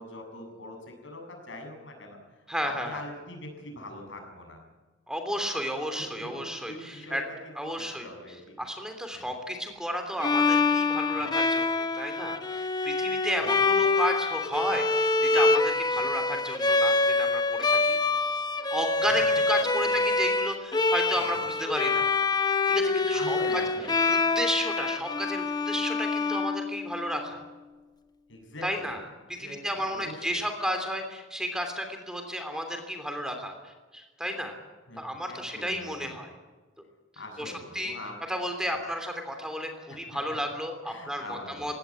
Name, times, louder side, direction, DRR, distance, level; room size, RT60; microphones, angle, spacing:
voice 1, 0.0-4.6 6.0-6.3 6.6-7.4 7.8-8.6 9.1-9.2 11.2-11.3 13.4-13.7 15.9-16.0 19.5-20.1 21.2-21.4 23.1-23.9 28.3-28.9 29.4-30.4 34.9-36.2 37.2-38.2 39.9-40.0 40.3-40.4 40.9-41.8, left 1 dB, 70° left, 3 dB, 7.1 m, -43 dB
voice 2, 2.5-3.0 5.1-7.2 7.5-8.1 8.6-18.0 18.7-22.1 22.7-23.6 24.1-27.4 28.6-29.0 29.4-34.5 35.0-36.3 37.4-38.0 38.3-41.8, equal, 5° right, 5 dB, 3.1 m, -33 dB
Bowed string instrument, 10.2-27.1, left 3 dB, 20° left, 1.1 m, -26 dB
21.0 x 17.5 x 9.6 m, 1.3 s
head